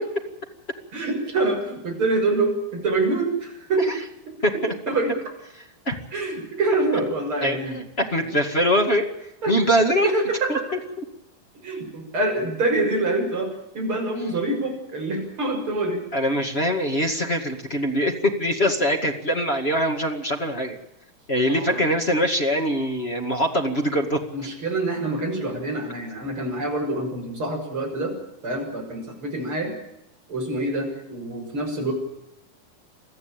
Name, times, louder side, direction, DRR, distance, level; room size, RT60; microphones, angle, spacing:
voice 1, 0.9-4.0 4.3-4.4 4.9-5.1 6.1-7.8 8.2-8.3 9.4-9.6 10.0-10.6 11.6-13.5 13.7-16.0 21.5-21.9 24.3-28.1 28.4-29.7 30.3-31.9, right 2 dB, 30° right, 1 dB, 7.1 m, -26 dB
voice 2, 4.4-4.7 5.8-5.9 7.4-9.0 9.5-10.1 10.5-10.6 16.1-20.8 21.3-24.2, equal, 25° left, 3 dB, 1.3 m, -23 dB
23.5 x 14.5 x 9.0 m, 0.85 s
omnidirectional pair, 4.6 m